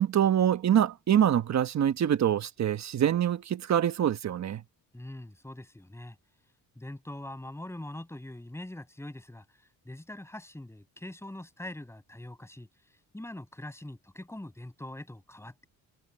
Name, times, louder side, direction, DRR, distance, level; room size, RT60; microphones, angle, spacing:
voice 1, 0.0-4.6, right 10 dB, 50° right, 1.2 m, -25 dB
voice 2, 4.9-6.2 6.7-12.7 13.1-15.7, left 1 dB, 5° left, 6.5 m, -43 dB
cardioid pair, 125°, 36 cm